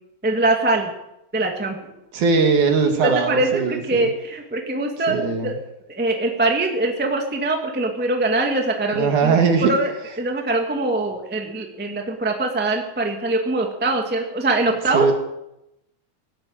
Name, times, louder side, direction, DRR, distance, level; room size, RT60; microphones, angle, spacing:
voice 1, 0.2-0.9 1.3-1.9 3.0-5.6 5.9-9.4 9.6-9.9 10.2-15.1, right 2 dB, 5° right, 2 dB, 1.0 m, -23 dB
voice 2, 2.1-4.1 5.1-5.5 8.9-9.7 14.9-15.1, right 5 dB, 60° right, 4 dB, 3.0 m, -19 dB
18.0 x 9.1 x 9.0 m, 0.87 s
omnidirectional pair, 4.2 m